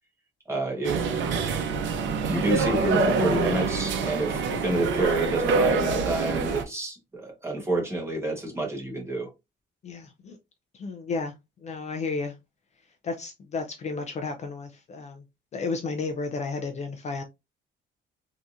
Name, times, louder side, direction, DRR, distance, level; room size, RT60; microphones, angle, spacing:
voice 1, 0.5-1.1 2.3-9.3, right 2 dB, 15° right, 1.2 m, -28 dB
sound 1, 0.8-6.6, right 4 dB, 75° right, 0.7 m, -26 dB
voice 2, 9.8-10.4 10.7-11.3 11.6-12.4 13.0-15.2 15.5-17.2, left 4 dB, 35° left, 0.4 m, -32 dB
3.5 x 2.8 x 2.5 m
cardioid pair, 160°, 20 cm